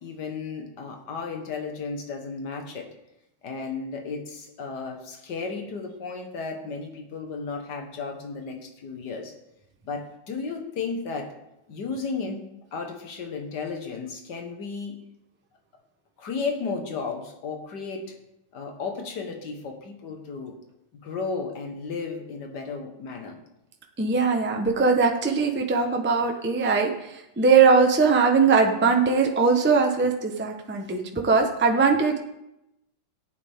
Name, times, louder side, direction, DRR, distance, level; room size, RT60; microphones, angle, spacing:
voice 1, 0.0-2.9 3.4-9.3 9.8-11.3 11.7-12.4 12.7-15.0 16.2-18.1 18.5-20.5 20.9-23.4, left 4 dB, 65° left, 4 dB, 1.9 m, -34 dB
voice 2, 24.0-32.2, right 4 dB, 10° right, 3 dB, 0.5 m, -21 dB
14.0 x 9.0 x 3.6 m, 0.88 s
omnidirectional pair, 2.0 m